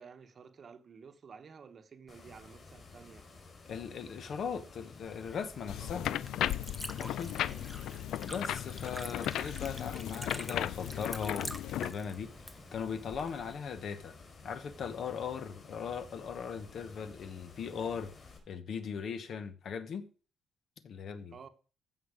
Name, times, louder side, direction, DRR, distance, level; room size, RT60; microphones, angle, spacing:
voice 1, 0.0-3.3 5.8-6.1 7.3-8.1 21.3-21.5, right 6 dB, 40° right, 1.0 m, -53 dB
sound 1, 2.1-18.4, left 3 dB, 35° left, 4.7 m, -54 dB
voice 2, 3.7-6.2 7.0-7.5 8.2-12.3 12.7-14.1 14.4-18.1 18.5-20.0 20.8-21.3, left 6 dB, 55° left, 1.0 m, -39 dB
Liquid, 5.0-13.6, equal, 5° left, 0.9 m, -47 dB
sound 2, 5.7-11.9, left 12 dB, 85° left, 0.4 m, -36 dB
15.0 x 5.7 x 5.0 m
cardioid pair, 150°, 0 cm